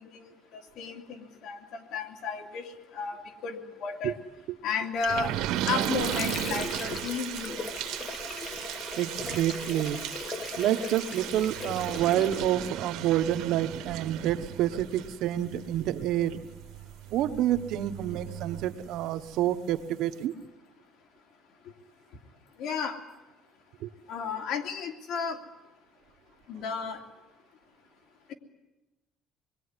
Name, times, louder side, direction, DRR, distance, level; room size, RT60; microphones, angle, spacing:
voice 1, 0.5-1.6 1.9-2.6 2.9-4.2 4.6-5.3 5.7-7.7 22.6-23.0 24.1-25.4 26.5-27.0, left 5 dB, 65° left, 3 dB, 2.9 m, -33 dB
sound 1, 5.0-19.3 19.8-19.9 20.1-20.2, right 12 dB, 80° right, 1.3 m, -36 dB
Water / Sink (filling or washing), 5.2-12.9, left 4 dB, 30° left, 1.5 m, -39 dB
voice 2, 9.0-10.0 10.6-16.4 17.1-20.3 23.8-23.9, right 12 dB, 65° right, 9 dB, 1.1 m, -28 dB
26.0 x 21.5 x 9.8 m, 1.1 s
cardioid pair, 155°, 0 cm